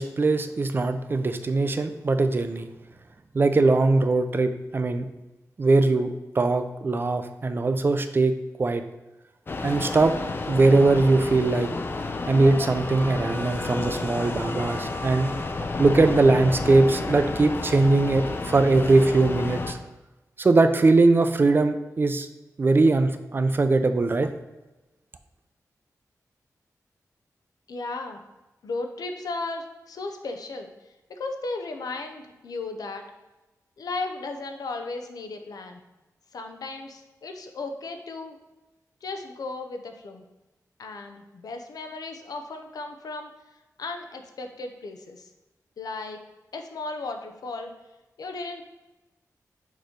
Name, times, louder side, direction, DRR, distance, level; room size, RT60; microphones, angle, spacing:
voice 1, 0.0-2.7 3.3-5.1 5.6-8.3 8.6-8.8 9.6-10.1 10.5-11.7 12.3-15.3 15.8-19.8 20.4-22.3 22.6-24.3, right 3 dB, 35° right, 8 dB, 0.4 m, -21 dB
sound 1, 9.5-19.7, left 3 dB, 35° left, 0.5 m, -31 dB
voice 2, 27.7-28.2 28.6-33.0 33.8-35.8 36.3-38.4 39.0-40.2 40.8-45.3 45.8-46.2 46.5-47.7 48.2-48.6, left 3 dB, 90° left, 5 dB, 0.7 m, -35 dB
6.5 x 3.0 x 5.0 m, 1.1 s
wide cardioid pair, 145°, 6 cm